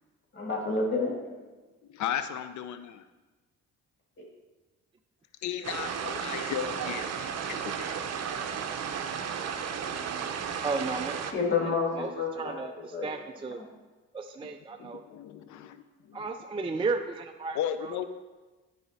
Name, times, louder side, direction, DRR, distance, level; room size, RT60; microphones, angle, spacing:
voice 1, 0.3-1.4 11.3-13.1, left 4 dB, 40° left, -2 dB, 2.0 m, -29 dB
voice 2, 1.9-3.0 5.4-7.9 14.8-16.3 16.7-16.8 17.5-18.1, left 10 dB, 70° left, 11 dB, 0.6 m, -35 dB
sound 1, 5.6-11.3, right 7 dB, 60° right, 0.7 m, -34 dB
voice 3, 10.6-11.2 11.9-13.6 14.1-15.0 16.1-17.9, right 3 dB, 20° right, 5 dB, 0.4 m, -34 dB
9.2 x 4.9 x 4.1 m, 1.2 s
cardioid pair, 90°, 30 cm